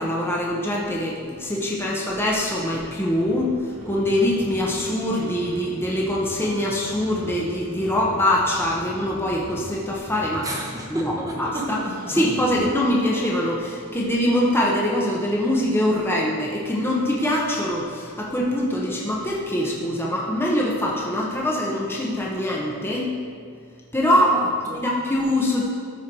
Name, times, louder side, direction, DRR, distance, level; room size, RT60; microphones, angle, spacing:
voice 1, 0.0-10.5 10.9-11.8 12.1-23.1 23.9-24.4 24.8-25.7, left 1 dB, 10° left, -3 dB, 1.0 m, -23 dB
sound 1, 2.7-12.7, equal, 80° right, 2.2 m, -40 dB
voice 2, 10.4-12.3 24.3-24.8, equal, 15° right, -2 dB, 1.1 m, -32 dB
13.5 x 4.6 x 4.6 m, 2.2 s
head